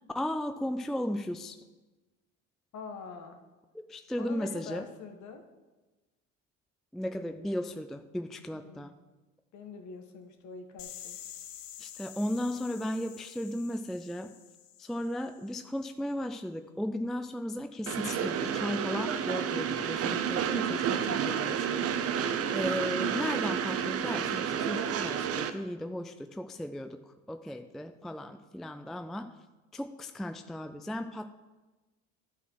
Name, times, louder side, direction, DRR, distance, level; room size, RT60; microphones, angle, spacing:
voice 1, 0.1-1.6 3.9-4.9 6.9-8.9 11.8-14.3 14.8-21.9 22.5-29.3 29.7-31.3, left 1 dB, ahead, 8 dB, 0.4 m, -35 dB
voice 2, 2.7-3.4 4.2-5.4 8.5-8.9 9.5-11.2, left 4 dB, 50° left, 5 dB, 1.5 m, -45 dB
sound 1, 10.8-15.6, left 10 dB, 80° left, 0.9 m, -48 dB
Train, 17.9-25.5, right 8 dB, 40° right, 0.8 m, -30 dB
11.0 x 4.3 x 6.2 m, 1.2 s
hypercardioid pair, 70°, 37 cm